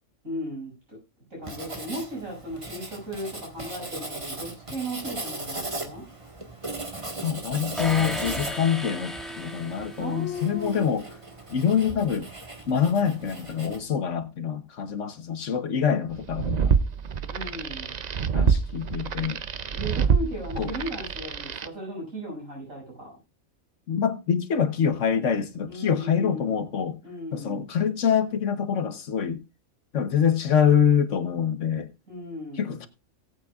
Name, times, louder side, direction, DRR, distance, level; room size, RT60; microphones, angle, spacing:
voice 1, 0.2-1.0 1.3-6.1 10.0-10.9 17.3-17.9 19.7-23.1 25.7-26.5 27.0-27.6 32.1-32.8, equal, 75° right, 7.2 m, -36 dB
Writing, 1.4-13.8, right 2 dB, 25° right, 1.6 m, -38 dB
voice 2, 7.2-11.0 11.5-12.3 12.7-16.7 18.3-19.4 20.6-20.7 23.9-27.0 27.3-29.4 29.9-31.9 32.6-32.9, left 7 dB, 65° left, 1.3 m, -25 dB
sound 1, 7.8-10.6, equal, ahead, 1.6 m, -34 dB
sound 2, 16.2-21.7, right 6 dB, 55° right, 0.5 m, -26 dB
18.0 x 8.8 x 2.4 m
omnidirectional pair, 1.4 m